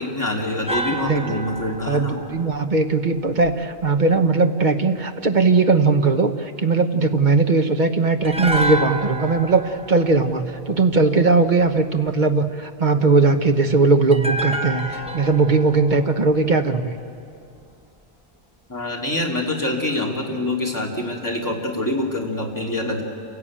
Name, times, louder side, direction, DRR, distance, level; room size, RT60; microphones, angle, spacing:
voice 1, 0.0-2.2 18.7-23.0, left 1 dB, 15° left, -1 dB, 3.0 m, -25 dB
sound 1, 0.7-3.8 8.2-11.5 14.1-17.3 17.6-17.7, right 1 dB, 5° right, 1.3 m, -30 dB
voice 2, 0.9-1.4 1.9-16.9, right 3 dB, 45° right, 7 dB, 1.3 m, -19 dB
28.5 x 17.0 x 8.8 m, 2.4 s
omnidirectional pair, 1.1 m